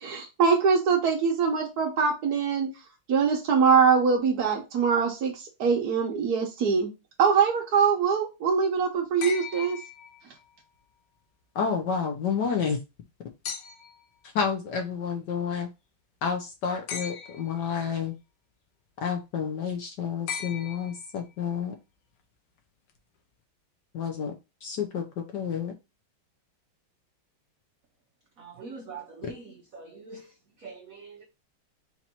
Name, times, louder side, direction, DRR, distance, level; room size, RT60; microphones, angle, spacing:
voice 1, 0.0-2.7 3.1-6.9 7.2-9.8, right 6 dB, 60° right, 1.2 m, -23 dB
sound 1, 9.2-10.6 13.4-14.1 16.9-17.7 20.3-21.3 22.9-23.0, left 7 dB, 90° left, 1.7 m, -38 dB
voice 2, 11.5-12.8 14.3-15.7 16.2-18.1 19.0-21.7 23.9-24.3 24.6-25.7, left 6 dB, 65° left, 1.1 m, -29 dB
voice 3, 28.4-31.2, right 4 dB, 75° right, 0.7 m, -44 dB
4.4 x 2.6 x 4.2 m
omnidirectional pair, 2.4 m